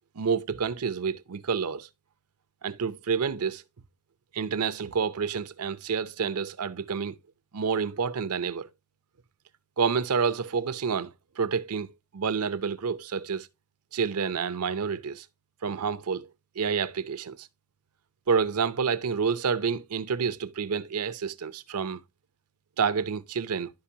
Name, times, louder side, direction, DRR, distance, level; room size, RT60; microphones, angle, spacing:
voice 1, 0.1-1.9 2.6-3.6 4.3-7.2 7.5-8.7 9.8-13.5 13.9-15.3 15.6-16.3 16.6-17.5 18.3-22.0 22.8-23.7, right 6 dB, 85° right, 0.6 m, -29 dB
11.5 x 5.3 x 2.7 m
head